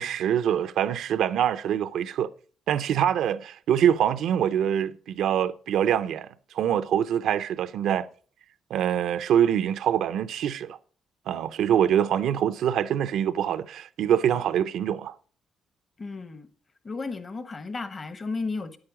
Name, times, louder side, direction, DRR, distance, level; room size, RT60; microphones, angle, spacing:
voice 1, 0.0-2.3 2.7-6.3 6.5-8.1 8.7-10.8 11.3-15.1, right 9 dB, 75° right, 0.6 m, -24 dB
voice 2, 16.0-16.5 16.8-18.8, left 3 dB, 35° left, 1.2 m, -33 dB
9.8 x 8.8 x 5.0 m
cardioid pair, 90°, 0 cm